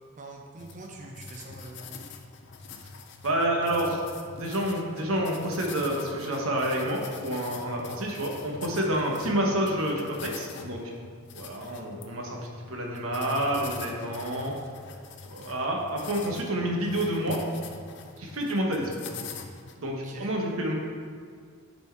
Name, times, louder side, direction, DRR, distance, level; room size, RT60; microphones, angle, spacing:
voice 1, 0.2-2.0 2.6-2.7 8.7-9.0 19.8-20.3, right 2 dB, 35° right, 1 dB, 0.5 m, -44 dB
sound 1, 0.6-19.8, left 5 dB, 50° left, 0.5 m, -44 dB
voice 2, 3.2-4.0 4.3-10.9 11.4-12.4 12.7-14.5 15.3-17.5 18.2-19.0 19.8-20.7, right 1 dB, 75° right, 0 dB, 1.1 m, -28 dB
6.8 x 4.4 x 4.5 m, 2.1 s
head